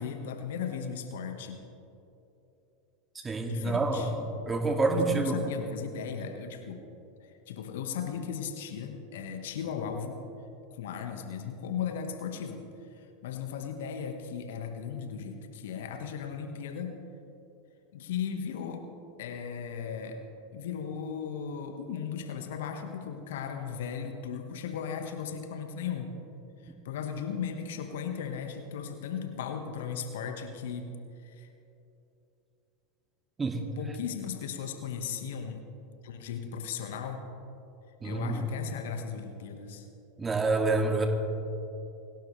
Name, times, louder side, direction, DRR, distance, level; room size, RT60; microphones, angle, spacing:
voice 1, 0.0-1.6 3.5-4.1 4.9-6.8 7.2-10.2 10.7-17.0 17.9-18.9 19.2-20.2 20.5-26.1 26.6-30.9 31.2-31.5 33.8-35.6 36.0-37.2 38.0-39.9, left 7 dB, 70° left, 5 dB, 1.5 m, -36 dB
voice 2, 3.2-5.4 33.4-33.6 38.0-38.5 40.2-41.1, right 3 dB, 20° right, 3 dB, 2.3 m, -28 dB
27.0 x 12.0 x 3.3 m, 2.9 s
hypercardioid pair, 90°, 0 cm